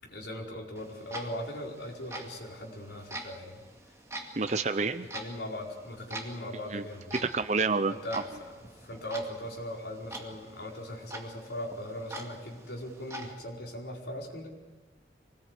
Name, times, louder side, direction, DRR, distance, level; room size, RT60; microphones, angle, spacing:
voice 1, 0.0-3.6 5.0-7.2 7.9-14.5, equal, 70° left, -1 dB, 4.7 m, -39 dB
Clock, 0.8-13.3, right 1 dB, 15° right, 2.3 m, -45 dB
voice 2, 4.4-5.1 6.7-6.8 7.1-8.2, right 4 dB, 40° right, 9 dB, 0.6 m, -29 dB
24.5 x 19.0 x 8.3 m, 1.3 s
head